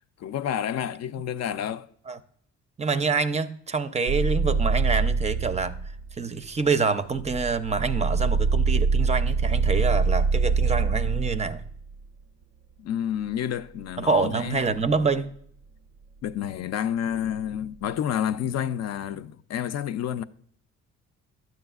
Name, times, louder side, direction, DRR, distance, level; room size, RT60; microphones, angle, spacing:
voice 1, 0.0-1.9 12.8-14.8 16.2-20.2, left 9 dB, 60° left, 0.5 m, -29 dB
voice 2, 2.8-5.8 6.1-11.6 14.0-15.3, right 4 dB, 20° right, 0.5 m, -26 dB
sound 1, 4.1-6.2 7.1-11.9 14.7-14.8, right 4 dB, 75° right, 0.5 m, -24 dB
10.5 x 7.0 x 2.3 m
cardioid pair, 90°, 30 cm